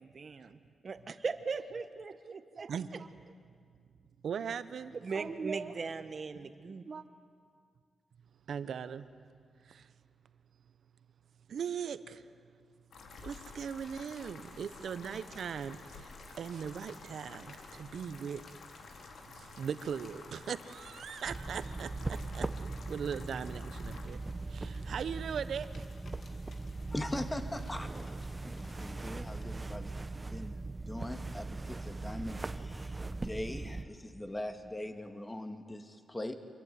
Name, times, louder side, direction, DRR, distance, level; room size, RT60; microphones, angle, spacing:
voice 1, 0.0-3.1 4.9-7.0, right 5 dB, 50° right, 1.4 m, -39 dB
voice 2, 4.2-5.0 6.3-6.5 8.5-9.1 9.6-9.9 11.5-12.3 13.2-18.4 19.3-22.5 22.9-24.2 24.5-25.8, right 7 dB, 75° right, 1.1 m, -39 dB
sound 1, 12.9-24.1, left 4 dB, 85° left, 2.8 m, -52 dB
sound 2, 13.1-29.4, left 3 dB, 55° left, 2.9 m, -58 dB
sound 3, 21.3-33.8, right 3 dB, 25° right, 1.0 m, -40 dB
voice 3, 26.9-27.9 28.4-30.0 30.3-36.3, left 1 dB, 15° left, 2.2 m, -41 dB
27.0 x 22.5 x 9.6 m
cardioid pair, 85°, 0 cm